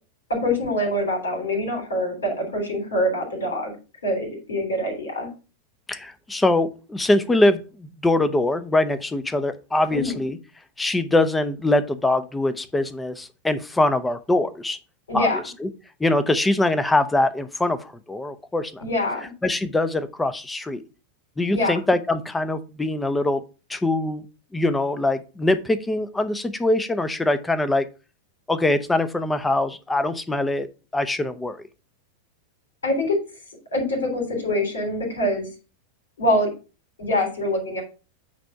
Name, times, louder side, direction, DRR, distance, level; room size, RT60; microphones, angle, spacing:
voice 1, 0.3-3.7 4.0-5.3 9.9-10.2 15.1-15.4 18.8-19.3 21.5-21.7 32.8-33.2 33.7-35.5 36.2-36.5 37.0-37.8, left 1 dB, 70° left, 3 dB, 3.3 m, -24 dB
voice 2, 5.9-10.4 10.8-14.8 15.1-15.7 16.0-18.8 19.4-20.8 21.4-23.4 23.7-24.2 24.5-27.8 28.5-30.7 30.9-31.6, left 2 dB, 10° left, 12 dB, 0.8 m, -23 dB
8.9 x 3.5 x 5.6 m, 0.32 s
figure-of-eight pair, 90°, 0 cm